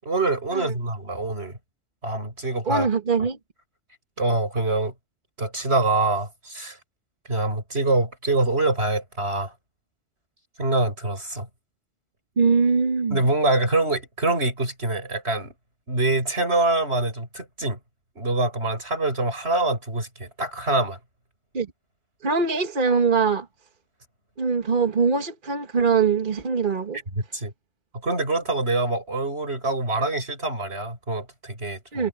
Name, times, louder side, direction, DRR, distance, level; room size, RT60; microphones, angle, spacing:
voice 1, 0.0-1.6 2.0-2.9 4.2-4.9 5.4-6.8 7.3-9.5 10.6-11.5 13.1-15.5 15.9-17.8 18.2-21.0 27.3-27.5 28.0-32.1, right 2 dB, 85° right, 7.7 m, -25 dB
voice 2, 2.6-3.4 12.4-13.2 21.5-21.7 22.2-23.5 24.4-27.0 31.9-32.1, right 5 dB, 50° right, 1.6 m, -22 dB
omnidirectional pair, 1.1 m